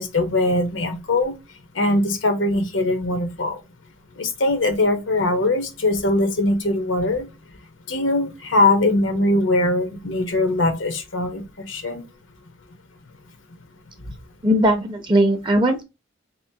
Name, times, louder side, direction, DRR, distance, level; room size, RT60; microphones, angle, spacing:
voice 1, 0.0-1.3 1.8-3.6 4.2-7.3 7.9-11.4 11.7-12.0, left 2 dB, 85° left, 0.9 m, -21 dB
voice 2, 14.4-15.8, right 1 dB, 25° right, 0.5 m, -18 dB
3.8 x 3.0 x 2.7 m
head